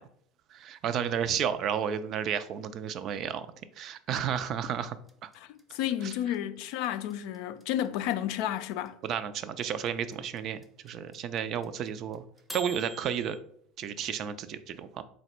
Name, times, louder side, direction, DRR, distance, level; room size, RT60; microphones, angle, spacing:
voice 1, 0.5-3.5 3.8-5.0 5.2-5.3 6.0-6.1 9.0-10.6 10.8-12.2 12.5-13.4 13.8-15.0, right 8 dB, 50° right, 0.3 m, -32 dB
sound 1, 5.1-13.4, equal, 5° right, 0.6 m, -45 dB
voice 2, 5.3-9.0, left 11 dB, 65° left, 0.3 m, -32 dB
4.0 x 2.2 x 4.1 m
hypercardioid pair, 75°, 0 cm